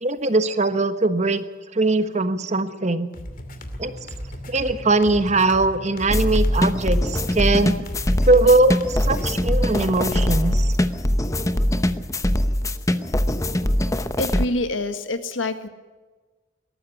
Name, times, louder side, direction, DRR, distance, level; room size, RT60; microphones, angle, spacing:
voice 1, 0.0-1.4 1.7-3.1 3.8-3.9 4.5-7.8 8.3-10.7, right 2 dB, 35° right, 11 dB, 1.2 m, -20 dB
sound 1, 3.1-10.7, equal, 45° left, 2.6 m, -36 dB
sound 2, 6.1-14.4, left 1 dB, 15° left, 0.8 m, -22 dB
voice 2, 14.2-15.7, left 2 dB, 85° left, 9 dB, 1.8 m, -26 dB
19.5 x 13.5 x 9.9 m, 1.3 s
head